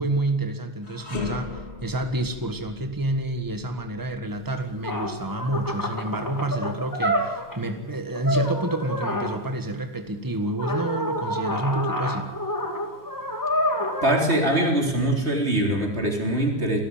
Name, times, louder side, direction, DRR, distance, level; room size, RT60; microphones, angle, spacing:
voice 1, 0.0-12.3, right 2 dB, 20° right, 7 dB, 1.8 m, -28 dB
sound 1, 0.8-10.1 10.5-10.7 11.5-12.4, left 4 dB, 85° left, 3.5 m, -41 dB
sound 2, 4.6-4.7 4.8-7.6 8.1-9.4 10.6-14.4, left 1 dB, 20° left, 2.6 m, -28 dB
voice 2, 14.0-16.8, right 1 dB, 90° right, 2 dB, 4.2 m, -23 dB
28.5 x 13.0 x 9.0 m, 1.1 s
omnidirectional pair, 1.1 m